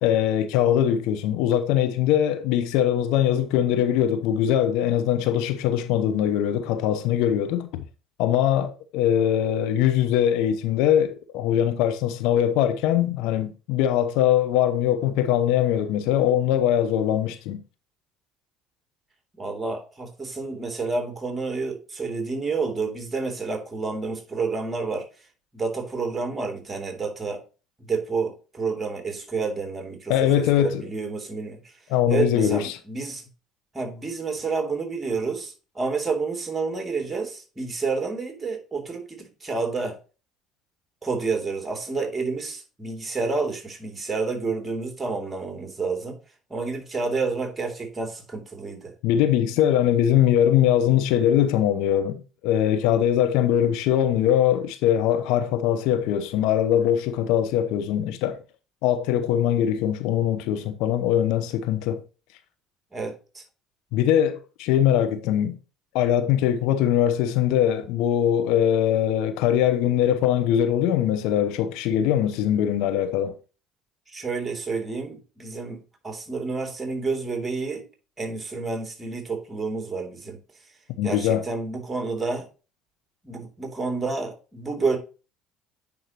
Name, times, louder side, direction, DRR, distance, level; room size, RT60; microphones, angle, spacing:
voice 1, 0.0-7.8 8.2-17.6 30.1-30.8 31.9-32.8 49.0-58.4 58.8-62.0 63.9-65.6 65.9-73.3 81.0-81.4, left 10 dB, 70° left, 0.8 m, -22 dB
voice 2, 19.4-25.1 25.5-27.4 27.8-31.6 32.1-33.2 33.7-40.0 41.0-46.2 46.5-48.9 62.9-63.4 74.1-77.9 78.2-80.4 81.0-82.5 83.2-85.0, right 4 dB, 20° right, 2.8 m, -29 dB
9.4 x 5.4 x 3.0 m
hypercardioid pair, 65°, 0 cm